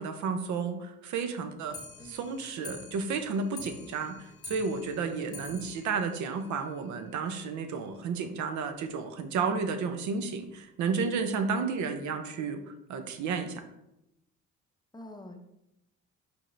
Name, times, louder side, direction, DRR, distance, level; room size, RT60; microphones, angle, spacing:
voice 1, 0.0-1.8 2.0-13.6, right 5 dB, 75° right, 7 dB, 0.6 m, -32 dB
Clock, 1.7-7.2 7.5-7.6 7.9-8.0 8.3-8.4 8.6-8.7 9.4-9.5 10.2-10.3 11.0-11.1, left 3 dB, 50° left, 0.8 m, -48 dB
voice 2, 11.6-12.1 14.9-15.4, left 1 dB, 15° left, 4 dB, 0.6 m, -47 dB
4.6 x 4.2 x 2.6 m, 0.86 s
cardioid pair, 90°, 29 cm